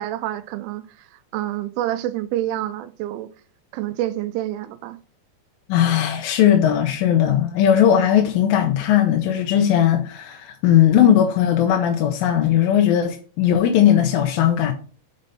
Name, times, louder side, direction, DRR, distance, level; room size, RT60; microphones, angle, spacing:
voice 1, 0.0-3.3 3.7-5.0, right 13 dB, 85° right, 2.3 m, -28 dB
voice 2, 5.7-14.7, left 10 dB, 80° left, 2.3 m, -18 dB
5.2 x 5.2 x 4.1 m
omnidirectional pair, 4.3 m